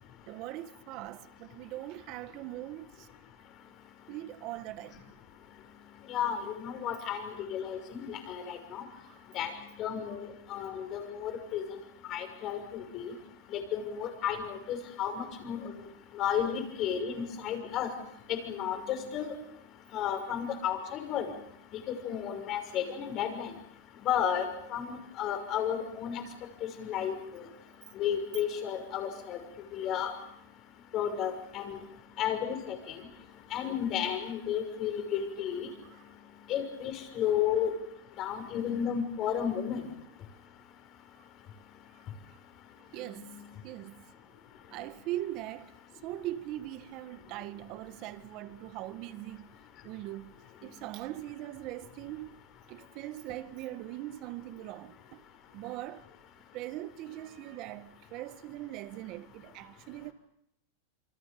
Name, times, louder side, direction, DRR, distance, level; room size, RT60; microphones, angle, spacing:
voice 1, 0.3-3.1 4.1-5.1 9.1-9.2 9.9-10.0 28.5-28.6 35.9-36.0 36.9-37.0 41.9-42.0 42.9-43.3 43.6-44.1 44.7-45.8 46.0-49.5 49.8-50.4 50.6-52.4 52.7-55.2 55.5-56.0 56.5-60.1, right 15 dB, 45° right, 1.6 m, -41 dB
voice 2, 6.1-8.8 9.3-9.5 9.8-10.2 10.5-11.8 12.1-13.1 13.5-15.9 16.1-17.9 18.3-19.3 19.9-21.3 22.0-23.5 24.0-26.2 26.6-27.4 28.0-29.4 29.7-30.1 30.9-31.8 32.2-33.0 33.5-35.7 36.5-37.7 38.2-39.8, left 9 dB, 35° left, 6.1 m, -33 dB
28.0 x 25.5 x 7.0 m
supercardioid pair, 145°, 0 cm